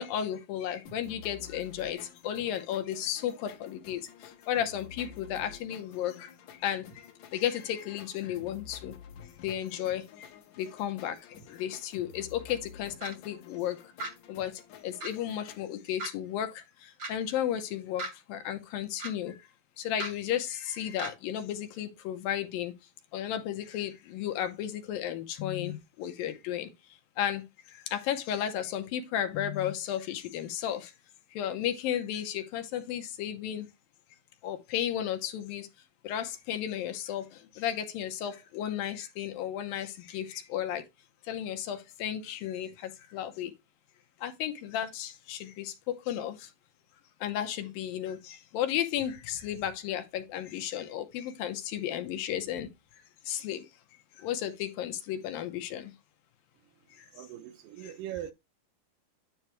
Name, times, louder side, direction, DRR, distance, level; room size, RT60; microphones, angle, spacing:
voice 1, 0.0-10.3 10.6-13.9 14.3-19.4 19.8-22.7 23.1-26.7 27.2-27.4 27.7-30.9 31.3-33.7 34.4-35.7 36.0-40.8 41.2-43.5 44.2-46.5 47.2-52.7 53.3-53.7 54.2-55.9 56.9-57.1 57.8-57.9, left 10 dB, 80° left, 2.5 m, -34 dB
sound 1, 0.9-15.6, left 7 dB, 65° left, 2.1 m, -51 dB
sound 2, 13.0-13.1 14.0-14.1 15.0-15.1 16.0-16.1 17.0-17.1 18.0-18.1 19.0-19.1 20.0-20.1 21.0-21.1, right 2 dB, 40° right, 1.2 m, -36 dB
voice 2, 57.1-58.3, right 12 dB, 75° right, 2.2 m, -40 dB
10.0 x 4.6 x 3.1 m
omnidirectional pair, 4.3 m